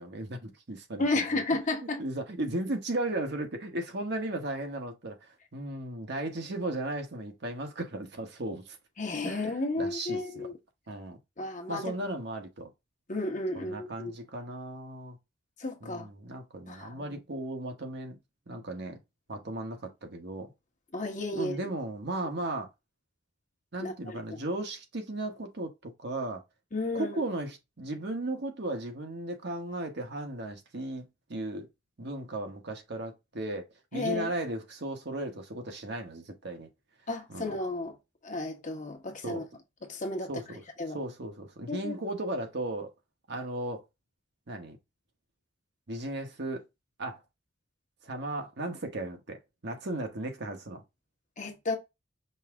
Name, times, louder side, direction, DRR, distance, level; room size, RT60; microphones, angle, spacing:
voice 1, 0.0-1.1 1.3-1.4 2.0-5.2 5.5-8.8 9.2-9.4 9.8-10.5 10.9-11.2 11.7-12.7 13.5-15.2 15.8-18.2 18.5-19.0 19.3-20.5 21.3-22.7 23.7-26.4 26.9-31.7 32.0-36.7 37.3-37.5 39.2-39.5 40.3-40.6 40.9-42.9 43.3-43.8 44.5-44.8 45.9-46.6 47.0-47.2 48.0-49.4 49.6-50.8, right 1 dB, 60° right, 1.1 m, -36 dB
voice 2, 1.0-2.0 9.0-10.5 11.4-11.9 13.1-14.1 15.6-16.1 16.7-17.2 20.9-21.6 23.8-24.2 26.7-27.2 33.9-34.3 37.1-38.0 38.2-39.4 39.8-40.3 40.8-41.0 41.7-42.0 51.4-51.8, left 2 dB, 40° left, 1.2 m, -33 dB
5.5 x 2.7 x 3.5 m
head